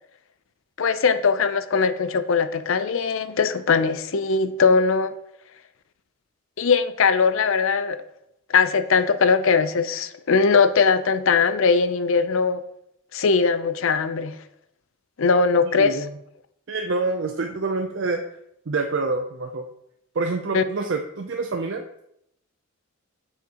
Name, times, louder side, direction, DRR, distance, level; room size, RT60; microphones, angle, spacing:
voice 1, 0.8-5.1 6.6-8.0 8.5-12.6 13.1-14.4 15.2-16.0 20.5-20.6, left 5 dB, 65° left, 12 dB, 0.5 m, -20 dB
voice 2, 15.7-16.1 16.7-18.2 18.7-19.7 20.2-21.8, right 3 dB, 55° right, 4 dB, 0.5 m, -26 dB
8.4 x 6.3 x 2.9 m, 0.76 s
head